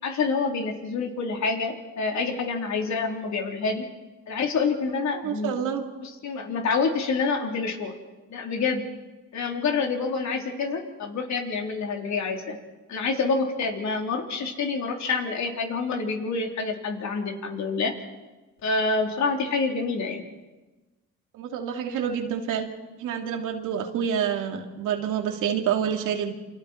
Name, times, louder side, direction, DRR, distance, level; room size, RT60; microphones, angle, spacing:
voice 1, 0.0-3.9 4.3-5.6 6.0-7.9 8.3-8.8 9.3-12.6 12.9-17.9 18.6-20.2, left 4 dB, 65° left, 2 dB, 3.6 m, -27 dB
voice 2, 5.1-5.8 21.3-22.7 23.0-26.3, right 8 dB, 85° right, 3 dB, 2.5 m, -28 dB
28.5 x 26.0 x 4.5 m, 1.2 s
cardioid pair, 90°, 30 cm